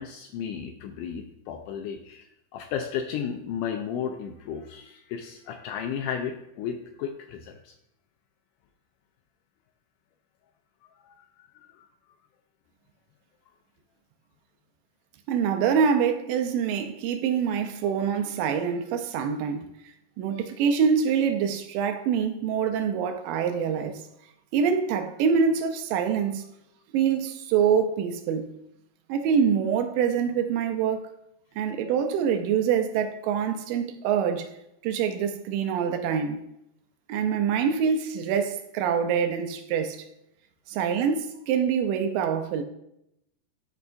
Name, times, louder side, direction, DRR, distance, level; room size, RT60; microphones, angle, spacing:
voice 1, 0.0-7.7 11.0-11.9, left 8 dB, 80° left, 2.0 m, -34 dB
voice 2, 15.3-19.7 20.2-24.0 24.5-26.4 26.9-28.5 29.1-31.1 31.6-34.5 34.8-36.4 37.1-40.0 40.7-42.6, right 7 dB, 85° right, 2.3 m, -25 dB
12.0 x 4.6 x 2.5 m
omnidirectional pair, 3.9 m